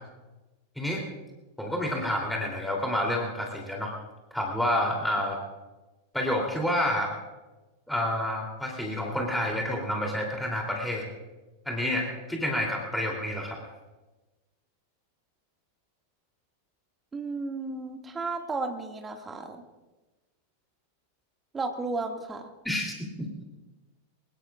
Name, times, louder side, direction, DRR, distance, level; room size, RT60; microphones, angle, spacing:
voice 1, 1.6-3.9 4.3-5.4 6.1-7.1 7.9-11.1 11.6-13.6 22.6-23.3, left 1 dB, 5° left, -1 dB, 3.1 m, -29 dB
voice 2, 17.1-19.6 21.5-22.5, right 3 dB, 15° right, 4 dB, 2.1 m, -33 dB
23.5 x 21.0 x 2.5 m, 1.1 s
figure-of-eight pair, 90°, 0 cm